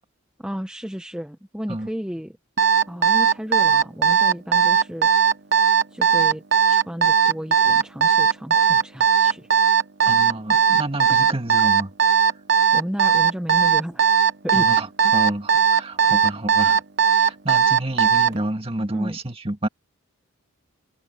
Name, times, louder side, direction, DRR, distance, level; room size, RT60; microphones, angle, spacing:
voice 1, 0.4-2.4 2.9-5.1 5.9-6.4 6.7-9.5 12.7-14.1 14.4-14.7 15.0-15.1 18.9-19.2, equal, 5° right, 0.8 m, -32 dB
Alarm, 2.6-18.4, right 7 dB, 50° right, 1.0 m, -17 dB
voice 2, 10.0-12.3 14.5-19.7, right 1 dB, 25° right, 2.0 m, -30 dB
head